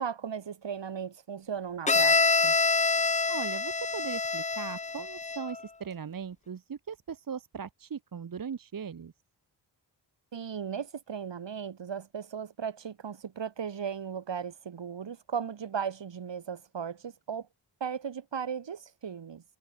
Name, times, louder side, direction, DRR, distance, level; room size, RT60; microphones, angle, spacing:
voice 1, 0.0-2.6 10.3-17.5 17.8-19.4, right 7 dB, 70° right, 7.4 m, -36 dB
Bowed string instrument, 1.9-5.6, left 4 dB, 15° left, 0.5 m, -26 dB
voice 2, 3.3-9.1, right 7 dB, 50° right, 1.5 m, -39 dB
wide cardioid pair, 145°, 44 cm